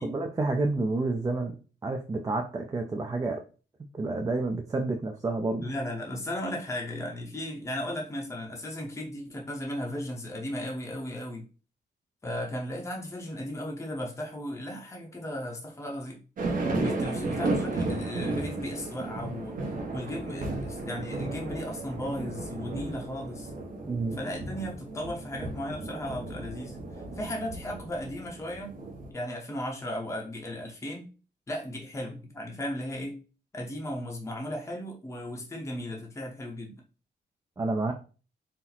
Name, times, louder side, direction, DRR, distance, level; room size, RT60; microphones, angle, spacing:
voice 1, 0.0-1.5 1.8-3.4 3.9-5.7 23.8-24.2 37.6-37.9, right 3 dB, 20° right, 3 dB, 0.4 m, -29 dB
voice 2, 5.6-11.5 12.2-16.2 16.8-23.5 24.2-26.8 27.2-28.8 29.1-31.1 31.5-33.2 33.5-36.8, left 1 dB, 15° left, 0 dB, 0.7 m, -36 dB
sound 1, 16.4-29.1, right 2 dB, 50° right, 0.8 m, -34 dB
4.2 x 2.0 x 3.9 m, 0.35 s
wide cardioid pair, 175°, 18 cm